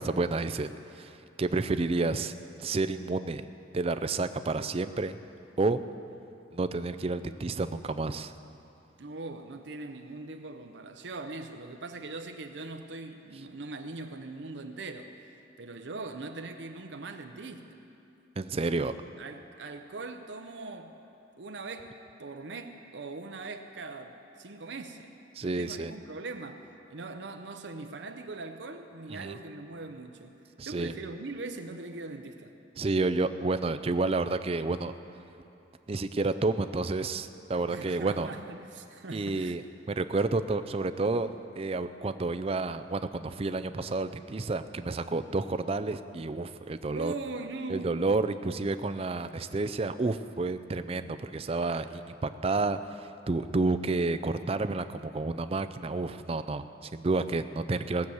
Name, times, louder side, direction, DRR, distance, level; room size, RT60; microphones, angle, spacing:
voice 1, 0.0-2.3 2.6-3.5 3.7-5.2 5.6-5.8 6.5-8.3 18.4-18.9 25.4-25.9 29.1-29.4 30.6-31.0 32.8-34.9 35.9-38.3 39.1-39.6 39.9-41.3 41.6-47.1 47.7-58.1, right 3 dB, 30° right, 11 dB, 0.4 m, -30 dB
voice 2, 9.0-15.1 15.6-17.7 18.7-18.9 19.2-21.0 21.4-21.9 22.2-25.1 25.4-30.3 30.6-32.5 37.7-39.6 46.9-48.0, right 3 dB, 70° right, 6 dB, 0.7 m, -41 dB
18.0 x 7.0 x 7.9 m, 2.7 s
head